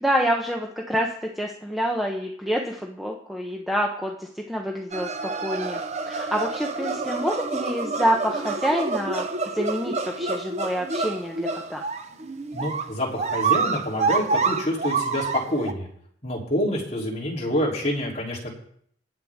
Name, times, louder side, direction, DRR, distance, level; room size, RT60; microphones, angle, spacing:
voice 1, 0.0-5.8 6.1-9.3 9.5-11.8, equal, ahead, 0 dB, 0.8 m, -27 dB
sound 1, 4.9-15.7, right 4 dB, 40° right, 0.7 m, -28 dB
voice 2, 12.5-15.9 16.2-18.5, left 1 dB, 40° left, -4 dB, 3.2 m, -27 dB
19.5 x 7.7 x 3.6 m, 0.65 s
head